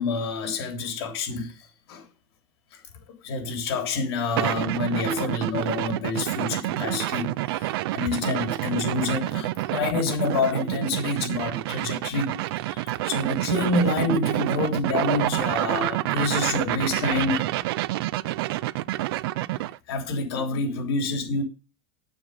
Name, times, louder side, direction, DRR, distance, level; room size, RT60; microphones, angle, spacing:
voice 1, 0.0-2.1 2.7-2.8 3.1-17.7 19.9-21.4, left 3 dB, 80° left, 3.5 m, -28 dB
sound 1, 4.4-19.8, right 17 dB, 70° right, 0.5 m, -28 dB
12.0 x 5.3 x 5.3 m
supercardioid pair, 160°, 13 cm